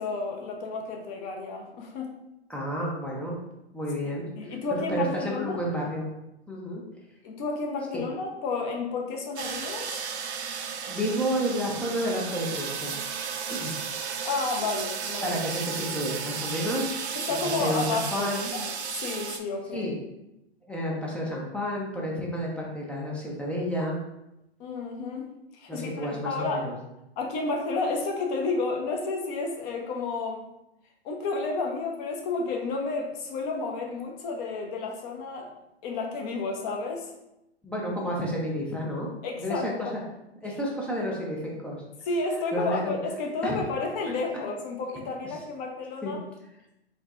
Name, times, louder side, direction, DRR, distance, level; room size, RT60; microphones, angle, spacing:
voice 1, 0.0-2.2 4.4-5.6 7.2-10.0 14.2-15.4 17.3-19.9 24.6-25.3 25.5-26.6 27.2-30.4 31.0-35.5 35.8-37.1 39.2-39.9 42.1-46.2, left 3 dB, 35° left, 1 dB, 0.8 m, -31 dB
voice 2, 2.5-3.4 3.7-6.1 6.5-6.8 7.9-8.0 10.6-12.9 13.5-13.7 15.2-17.2 17.4-18.5 19.7-19.9 20.7-24.0 25.7-26.7 37.6-39.1 39.4-40.0 40.4-41.8 42.5-43.0 43.4-43.6 46.0-46.2, equal, 5° left, -4 dB, 0.5 m, -31 dB
sound 1, 9.4-19.4, right 6 dB, 85° right, 0.5 m, -34 dB
4.5 x 2.8 x 2.4 m, 0.89 s
hypercardioid pair, 120°, 32 cm